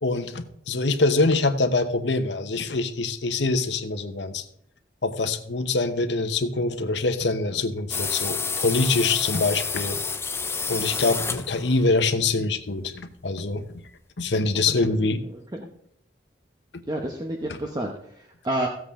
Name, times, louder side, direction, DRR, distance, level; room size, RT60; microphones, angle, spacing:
voice 1, 0.0-4.4 5.0-10.0 10.7-13.6 14.2-15.2, left 3 dB, 80° left, 9 dB, 1.0 m, -24 dB
sound 1, 7.9-11.9, left 5 dB, 15° left, 0.5 m, -29 dB
voice 2, 14.8-15.7 16.9-18.7, right 1 dB, 25° right, 2 dB, 0.9 m, -30 dB
15.0 x 7.8 x 3.7 m, 0.73 s
head